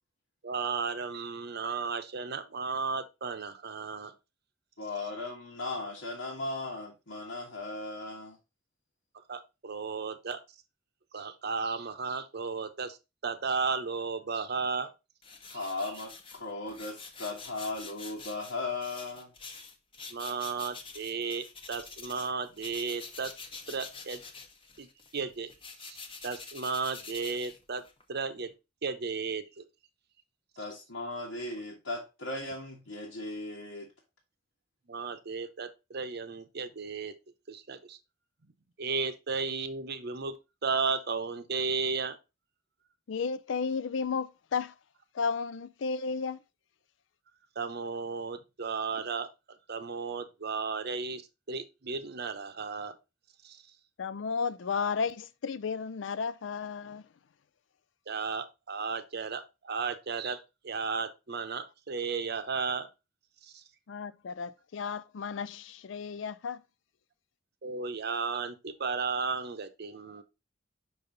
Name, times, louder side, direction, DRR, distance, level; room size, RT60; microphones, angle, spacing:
voice 1, 0.4-4.1 9.3-10.4 11.1-13.0 13.2-14.9 20.1-23.3 23.7-24.2 24.8-24.9 25.1-25.5 25.8-26.0 26.2-27.8 28.1-28.5 28.8-29.6 34.9-37.1 37.5-38.0 38.8-40.4 40.6-42.2 47.6-49.3 49.7-51.2 51.5-52.9 53.4-53.6 58.1-60.4 60.6-62.9 67.6-70.2, right 5 dB, 55° right, 0.8 m, -34 dB
voice 2, 4.8-8.4 15.5-19.3 30.6-33.9, left 2 dB, 85° left, 1.6 m, -37 dB
sound 1, 15.2-22.3 22.6-28.0, left 4 dB, 30° left, 0.9 m, -47 dB
voice 3, 43.1-44.7 45.1-46.4 54.0-57.0 63.9-66.6, left 5 dB, 70° left, 0.4 m, -33 dB
5.5 x 5.5 x 3.9 m
head